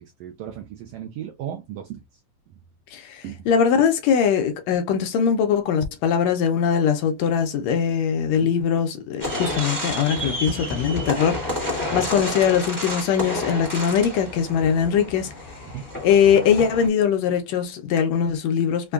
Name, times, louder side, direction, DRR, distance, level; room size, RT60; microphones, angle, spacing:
voice 1, 0.0-2.2 3.2-3.5 8.4-8.5 12.0-12.1 15.7-15.8, right 10 dB, 80° right, 1.4 m, -36 dB
voice 2, 2.9-15.3 16.0-18.9, left 7 dB, 75° left, 1.7 m, -21 dB
sound 1, 9.2-16.9, left 1 dB, 10° right, 0.9 m, -30 dB
5.1 x 2.3 x 2.3 m
omnidirectional pair, 3.4 m